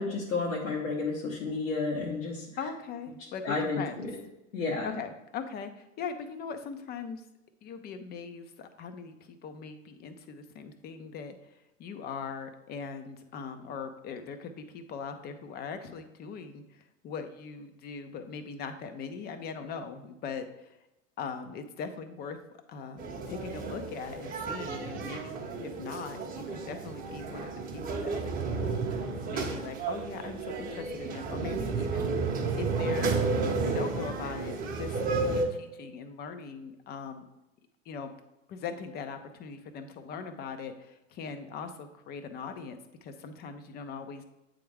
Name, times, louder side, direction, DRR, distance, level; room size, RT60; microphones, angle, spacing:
voice 1, 0.0-2.5 3.4-4.1 4.5-4.9, left 3 dB, 75° left, -3 dB, 1.2 m, -31 dB
voice 2, 2.6-4.0 4.8-7.2 7.6-20.8 21.2-22.4 22.7-32.3 32.6-33.2 33.6-37.2 37.9-38.1 38.5-44.2, left 5 dB, 25° left, 8 dB, 0.5 m, -40 dB
sound 1, 23.0-35.4, right 4 dB, 20° right, 0.9 m, -32 dB
8.3 x 3.6 x 3.4 m, 0.92 s
hypercardioid pair, 95°, 39 cm